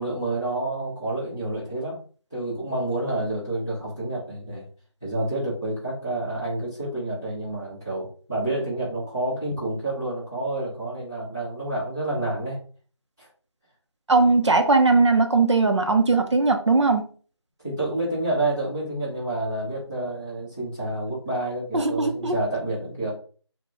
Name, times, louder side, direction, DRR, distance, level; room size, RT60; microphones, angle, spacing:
voice 1, 0.0-2.0 2.3-4.6 5.0-12.6 13.2-13.3 17.6-23.1, right 2 dB, 10° right, -13 dB, 0.9 m, -29 dB
voice 2, 14.1-17.0 21.7-22.3, right 3 dB, 70° right, 5 dB, 0.8 m, -19 dB
3.1 x 2.4 x 3.7 m, 0.41 s
figure-of-eight pair, 175°, 15 cm